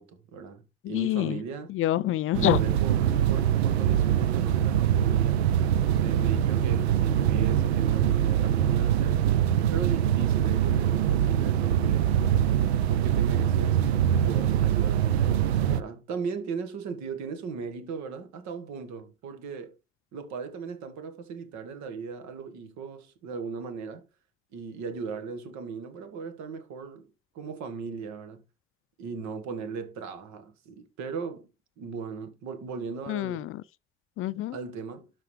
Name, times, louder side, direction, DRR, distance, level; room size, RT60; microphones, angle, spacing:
voice 1, 0.0-1.7 2.4-9.3 9.7-12.1 12.9-19.7 20.1-24.0 24.5-27.1 27.3-28.4 29.0-31.5 31.8-33.5 34.5-35.1, right 5 dB, 60° right, 1.8 m, -38 dB
voice 2, 0.9-1.4 1.7-2.6 33.1-33.5 34.2-34.6, left 14 dB, 45° left, 0.4 m, -26 dB
sound 1, 2.3-15.8, right 10 dB, 85° right, 0.5 m, -23 dB
12.0 x 4.1 x 3.3 m
hypercardioid pair, 60°, 31 cm